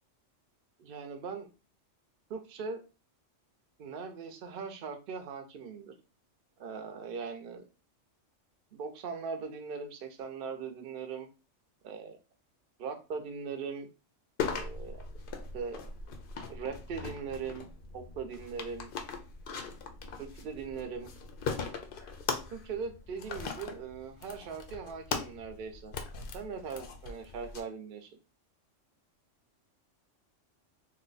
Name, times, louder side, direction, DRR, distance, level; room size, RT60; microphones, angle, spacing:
voice 1, 0.8-1.5 2.3-2.8 3.8-5.9 6.6-7.6 8.7-11.3 11.8-12.2 12.8-13.9 14.5-15.0 15.5-15.8 16.5-17.7 17.9-18.9 19.5-19.8 20.2-21.1 22.5-25.9 26.3-28.1, right 5 dB, 55° right, 6 dB, 0.7 m, -40 dB
sound 1, 14.4-27.6, left 5 dB, 60° left, 0.6 m, -40 dB
2.7 x 2.2 x 3.9 m, 0.31 s
omnidirectional pair, 1.3 m